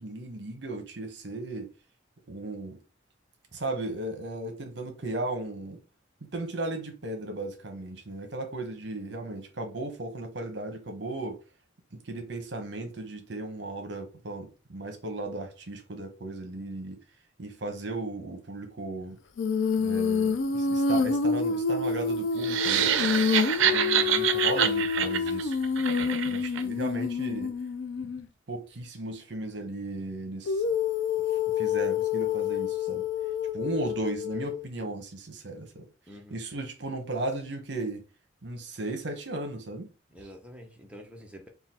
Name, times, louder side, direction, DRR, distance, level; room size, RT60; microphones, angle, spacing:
voice 1, 0.0-1.7 2.3-2.8 3.5-5.8 6.3-11.4 12.0-17.0 17.4-19.2 19.8-22.9 23.6-25.6 26.3-27.5 28.5-30.6 31.6-33.1 33.5-35.8 36.3-38.0 38.4-39.9, right 2 dB, 60° right, 0.9 m, -36 dB
Female singing, 19.4-28.3 30.5-34.7, left 5 dB, 70° left, 0.4 m, -28 dB
sound 1, 22.4-26.6, right 9 dB, 75° right, 0.5 m, -26 dB
voice 2, 36.1-36.4 40.1-41.5, equal, 5° right, 0.7 m, -47 dB
3.9 x 2.3 x 4.1 m
head